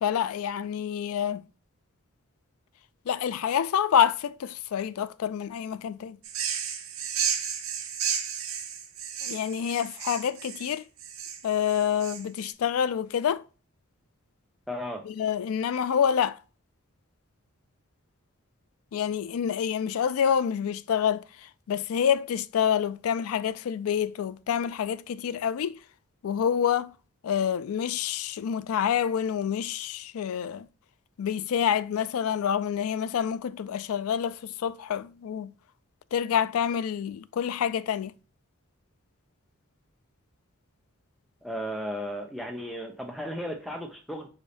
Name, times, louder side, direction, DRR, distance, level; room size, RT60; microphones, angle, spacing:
voice 1, 0.0-1.5 3.1-6.2 9.2-10.8 11.4-13.4 15.0-16.4 18.9-25.8 26.2-26.9 27.2-30.7 31.2-35.5 36.1-38.1, left 8 dB, 90° left, 0.3 m, -27 dB
sound 1, 6.2-12.5, right 8 dB, 80° right, 0.8 m, -33 dB
voice 2, 14.7-15.0 41.4-44.3, equal, ahead, 0.6 m, -35 dB
5.0 x 2.7 x 3.9 m
head